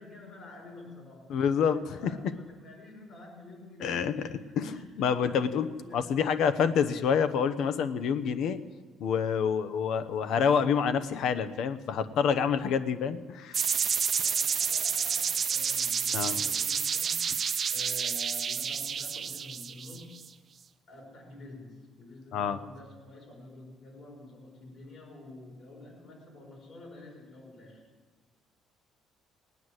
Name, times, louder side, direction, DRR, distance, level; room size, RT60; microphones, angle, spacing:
voice 1, 0.0-6.2 14.1-17.3 17.7-20.3 20.9-27.9, left 2 dB, 55° left, -1 dB, 5.0 m, -49 dB
voice 2, 1.3-2.1 3.8-8.6 9.0-13.6 16.1-16.4 22.3-22.6, left 7 dB, 70° left, 12 dB, 0.9 m, -27 dB
sound 1, 13.5-20.3, right 7 dB, 40° right, 0.6 m, -29 dB
18.5 x 9.5 x 8.0 m, 1.3 s
cardioid pair, 120°, 0 cm